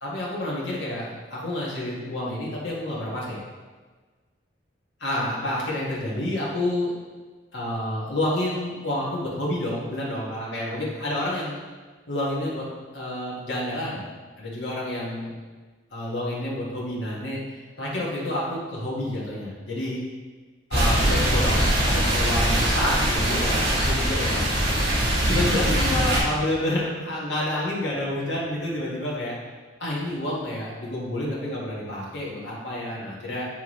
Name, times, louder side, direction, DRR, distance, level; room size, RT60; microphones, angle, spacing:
voice 1, 0.0-3.4 5.0-6.9 7.5-11.6 12.1-12.7 12.9-14.0 14.4-15.3 15.9-17.4 17.8-20.0 20.7-24.4 25.3-29.4 29.8-33.5, left 1 dB, 75° left, -5 dB, 1.8 m, -29 dB
sound 1, 20.7-26.2, right 1 dB, 65° right, 1.9 m, -22 dB
9.2 x 3.6 x 3.2 m, 1.4 s
head